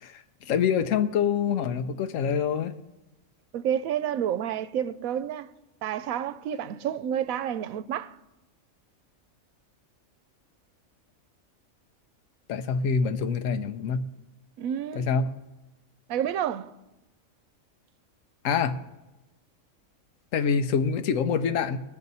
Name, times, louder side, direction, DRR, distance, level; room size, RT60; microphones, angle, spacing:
voice 1, 0.0-2.7 12.5-14.0 14.9-15.2 18.4-18.8 20.3-21.8, left 6 dB, 75° left, 1.1 m, -26 dB
voice 2, 3.5-5.5 5.8-8.2 14.6-15.1 16.1-16.7, right 9 dB, 85° right, 1.0 m, -29 dB
20.0 x 7.6 x 4.1 m
omnidirectional pair, 1.4 m